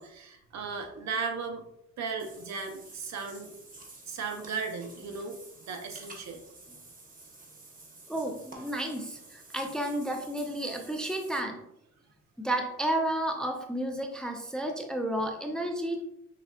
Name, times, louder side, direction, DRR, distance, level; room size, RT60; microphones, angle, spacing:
voice 1, 0.0-1.6 2.0-3.5 4.1-6.4, right 5 dB, 65° right, 4 dB, 0.8 m, -36 dB
Water / Bathtub (filling or washing), 2.2-11.4, right 2 dB, 30° right, 1.0 m, -51 dB
voice 2, 8.1-11.6 12.4-16.0, right 1 dB, ahead, 3 dB, 0.5 m, -32 dB
6.7 x 2.4 x 2.3 m, 0.79 s
cardioid pair, 90°, 30 cm